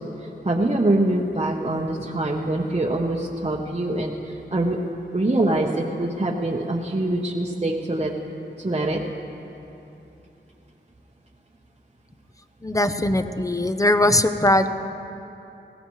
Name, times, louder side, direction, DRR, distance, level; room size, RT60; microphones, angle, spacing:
voice 1, 0.2-4.8 5.1-8.1 8.6-9.0, right 2 dB, 30° right, -2 dB, 0.9 m, -24 dB
voice 2, 12.6-14.7, left 1 dB, 15° left, 9 dB, 0.7 m, -20 dB
20.0 x 16.0 x 3.2 m, 2.9 s
wide cardioid pair, 50°, 19 cm